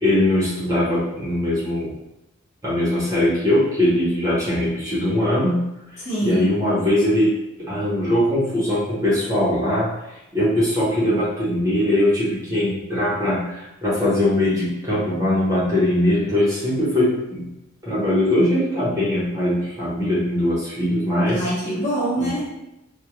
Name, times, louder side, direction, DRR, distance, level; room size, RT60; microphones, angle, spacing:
voice 1, 0.0-1.9 2.6-5.6 6.2-7.3 7.6-9.9 10.3-17.5 17.8-21.4 22.2-22.3, left 1 dB, 15° right, -9 dB, 0.6 m, -21 dB
voice 2, 6.0-6.5 21.3-22.6, right 1 dB, 35° left, -8 dB, 0.9 m, -25 dB
2.3 x 2.1 x 2.9 m, 0.91 s
head